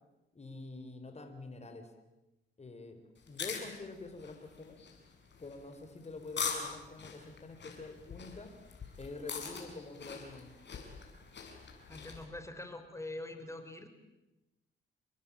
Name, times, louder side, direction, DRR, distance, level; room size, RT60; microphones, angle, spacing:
voice 1, 0.3-1.9 2.6-4.8 5.4-8.5 9.0-10.5, left 3 dB, 30° left, 6 dB, 4.4 m, -46 dB
sound 1, 3.2-12.2, left 5 dB, 55° left, 6.9 m, -43 dB
voice 2, 11.9-13.9, left 2 dB, 15° left, 8 dB, 4.9 m, -44 dB
29.0 x 22.5 x 8.8 m, 0.98 s
cardioid pair, 80°, 21 cm